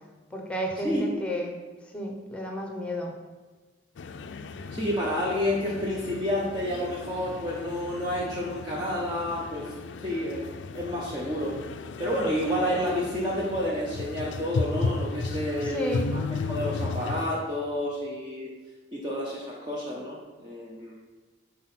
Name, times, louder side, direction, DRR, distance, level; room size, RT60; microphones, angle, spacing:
voice 1, 0.3-1.6 1.9-3.1 15.6-16.1, left 1 dB, 5° left, 1 dB, 0.9 m, -32 dB
sound 1, 4.0-17.3, left 4 dB, 70° left, 0.4 m, -35 dB
voice 2, 4.7-9.7 10.0-10.5 10.7-11.6 12.0-16.2 16.5-18.5 18.9-20.9, equal, 25° right, -5 dB, 0.8 m, -29 dB
6.3 x 4.3 x 5.6 m, 1.3 s
head